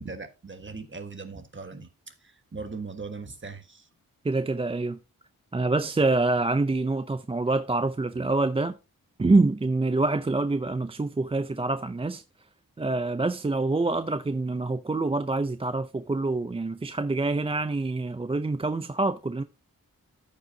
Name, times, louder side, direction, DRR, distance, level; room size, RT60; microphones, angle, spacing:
voice 1, 0.0-3.9, right 4 dB, 35° right, 1.4 m, -39 dB
voice 2, 4.2-5.0 5.5-8.8 9.2-12.2 12.8-19.4, right 3 dB, 15° right, 0.4 m, -26 dB
13.5 x 5.4 x 2.7 m
wide cardioid pair, 100°, 35 cm